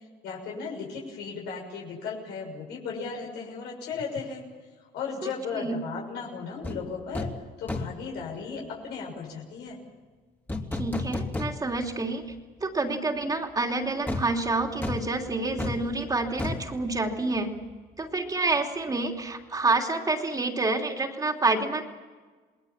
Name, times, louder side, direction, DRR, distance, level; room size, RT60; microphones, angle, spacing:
voice 1, 0.2-4.4 4.8-7.3 7.6-9.8, left 5 dB, 85° left, -1 dB, 6.7 m, -36 dB
sound 1, 6.6-6.8 7.1-7.4 7.7-8.1 10.5-11.9 12.3-12.4 14.1-17.7 18.0-18.1, left 2 dB, 10° left, 2.9 m, -33 dB
voice 2, 10.7-12.2 12.6-17.5 18.0-21.8, right 3 dB, 20° right, 3 dB, 3.0 m, -28 dB
28.5 x 20.5 x 7.3 m, 1.4 s
cardioid pair, 110°, 17 cm